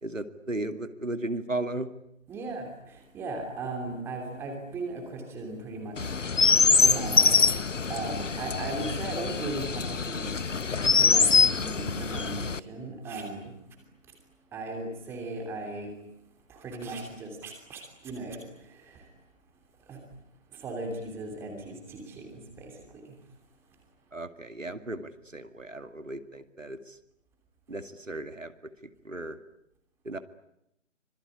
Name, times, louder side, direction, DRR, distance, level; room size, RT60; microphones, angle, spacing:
voice 1, 0.0-1.9 24.1-27.0 27.7-28.5 28.8-29.4 30.0-30.2, right 2 dB, 75° right, 9 dB, 2.3 m, -35 dB
voice 2, 2.3-6.3 6.8-7.4 7.9-10.4 10.8-13.5 14.5-15.9 16.5-18.5 18.9-19.0 19.9-20.0 20.6-22.7 23.0-23.1, right 2 dB, 5° right, 3 dB, 3.0 m, -37 dB
Chirp tweet, 6.0-12.6, left 5 dB, 70° left, 1.0 m, -24 dB
25.5 x 22.5 x 9.8 m, 0.80 s
figure-of-eight pair, 150°, 38 cm